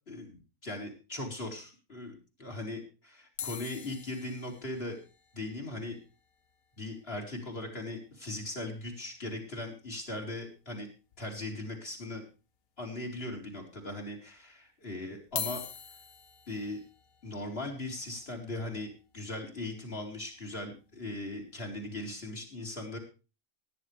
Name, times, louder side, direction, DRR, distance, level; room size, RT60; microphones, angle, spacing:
voice 1, 0.1-2.1 2.4-5.0 5.3-6.0 6.8-10.9 11.2-12.2 12.8-15.6 16.5-16.8 17.2-23.0, left 2 dB, 45° left, 1 dB, 4.0 m, -39 dB
sound 1, 3.4-7.7 8.0-8.1 8.3-8.5 8.9-9.0 10.3-10.4 11.1-11.6 12.1-12.2 13.1-13.2 15.2-21.3 21.8-22.1, left 8 dB, 90° left, 1.6 m, -45 dB
18.5 x 10.5 x 3.3 m, 0.32 s
omnidirectional pair, 1.5 m